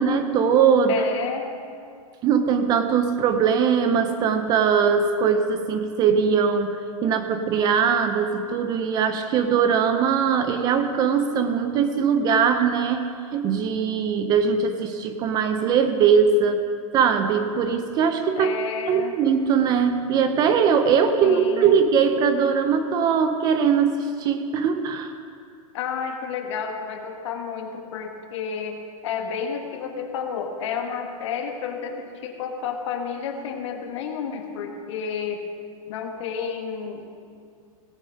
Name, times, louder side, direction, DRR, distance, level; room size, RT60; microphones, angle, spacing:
voice 1, 0.0-1.0 2.2-16.6 16.9-18.5 18.9-25.1, right 6 dB, 20° right, 8 dB, 0.5 m, -21 dB
voice 2, 0.9-1.5 18.3-19.1 21.2-21.7 25.7-35.4 35.9-37.1, left 6 dB, 55° left, 4 dB, 1.5 m, -31 dB
17.5 x 7.4 x 5.2 m, 2.3 s
hypercardioid pair, 150°, 18 cm